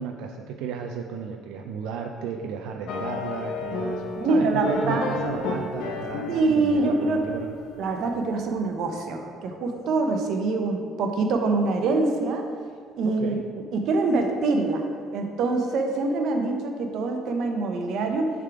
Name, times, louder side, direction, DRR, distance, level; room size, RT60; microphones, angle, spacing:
voice 1, 0.0-7.5 13.0-13.4, right 6 dB, 85° right, 4 dB, 0.3 m, -34 dB
sound 1, 2.9-8.1, left 3 dB, 75° left, 0.7 m, -32 dB
voice 2, 4.2-5.1 6.3-7.2 7.8-12.4 13.0-13.3 13.7-18.3, right 3 dB, 55° right, 4 dB, 0.7 m, -24 dB
6.7 x 3.6 x 4.7 m, 2.1 s
cardioid pair, 170°, 0 cm